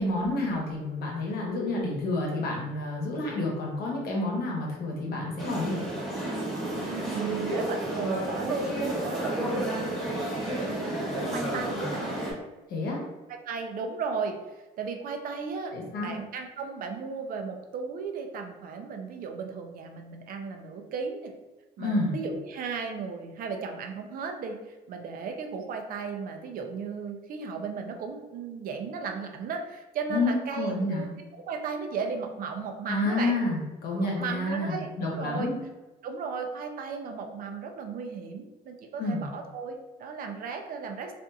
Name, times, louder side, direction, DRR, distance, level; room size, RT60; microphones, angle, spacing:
voice 1, 0.0-5.8 12.7-13.0 15.7-16.1 21.8-22.1 30.1-31.1 32.9-35.5 39.0-39.2, left 2 dB, 65° left, -2 dB, 0.9 m, -29 dB
sound 1, 5.4-12.3, right 1 dB, ahead, 1.0 m, -31 dB
voice 2, 6.8-12.1 13.5-14.3 14.8-15.7 16.0-21.3 21.8-31.1 31.4-33.4 33.9-35.5 36.0-41.1, right 5 dB, 55° right, 4 dB, 0.4 m, -35 dB
2.7 x 2.5 x 2.3 m, 1.1 s
cardioid pair, 110°, 17 cm